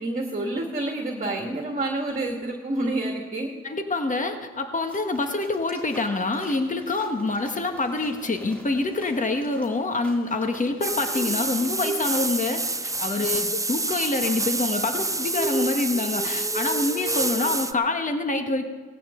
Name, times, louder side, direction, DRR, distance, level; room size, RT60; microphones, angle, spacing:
voice 1, 0.0-3.5 13.4-13.5, right 2 dB, 25° right, 2 dB, 2.1 m, -28 dB
voice 2, 3.6-18.7, left 2 dB, 25° left, 6 dB, 1.5 m, -26 dB
sound 1, 4.8-12.4, equal, 5° left, 3.4 m, -49 dB
sound 2, 10.8-17.7, right 2 dB, 10° right, 0.7 m, -27 dB
17.5 x 15.0 x 3.9 m, 1.4 s
supercardioid pair, 60°, 30 cm